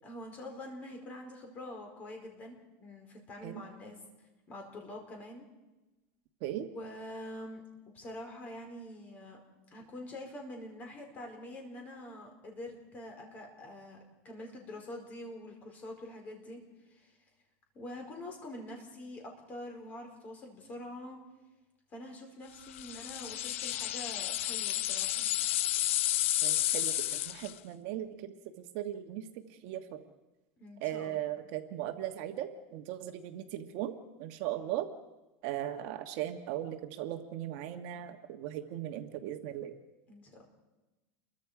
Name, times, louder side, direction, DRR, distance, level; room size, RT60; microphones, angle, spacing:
voice 1, 0.0-4.0 4.5-5.5 6.7-9.4 9.7-14.0 14.2-17.1 17.7-21.2 21.9-25.4 30.6-31.2 40.1-40.4, left 1 dB, 25° left, 3 dB, 4.5 m, -45 dB
sound 1, 22.7-27.6, left 14 dB, 85° left, 0.7 m, -31 dB
voice 2, 26.4-28.3 28.7-29.2 29.6-30.0 30.8-34.9 35.4-39.7, right 12 dB, 50° right, 6 dB, 1.4 m, -38 dB
29.0 x 23.0 x 4.9 m, 1.1 s
supercardioid pair, 170°, 7 cm